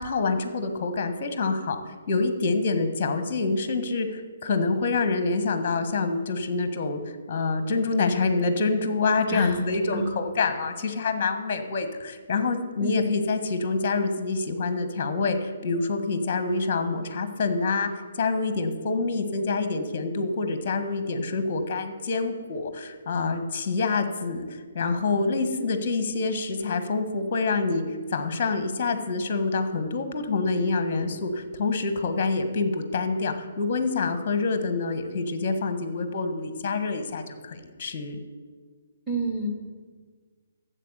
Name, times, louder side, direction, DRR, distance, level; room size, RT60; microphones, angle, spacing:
voice 1, 0.0-1.8 2.1-7.0 7.3-17.9 18.1-38.2, left 3 dB, 30° left, 8 dB, 1.3 m, -26 dB
voice 2, 9.3-9.6 9.9-10.1 12.8-13.0 39.1-39.5, right 2 dB, 5° left, 2 dB, 2.3 m, -28 dB
12.5 x 7.8 x 6.8 m, 1.5 s
figure-of-eight pair, 135°, 0 cm